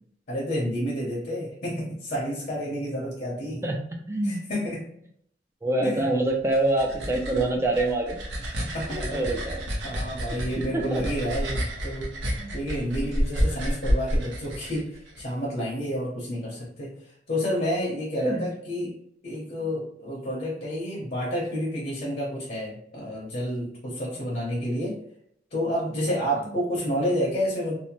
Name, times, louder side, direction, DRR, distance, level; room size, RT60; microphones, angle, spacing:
voice 1, 0.3-3.6 4.3-4.8 5.8-6.0 8.6-9.2 9.8-12.1 12.5-18.9 19.2-25.0 25.5-27.8, equal, 50° left, -5 dB, 0.8 m, -30 dB
voice 2, 3.6-4.4 5.6-8.2 8.9-9.6 10.3-11.0 12.2-12.5 18.2-18.5 26.4-26.5, right 2 dB, 15° right, 2 dB, 0.3 m, -26 dB
sound 1, 6.3-15.2, equal, 85° right, 0.7 m, -29 dB
2.7 x 2.1 x 2.9 m, 0.70 s
head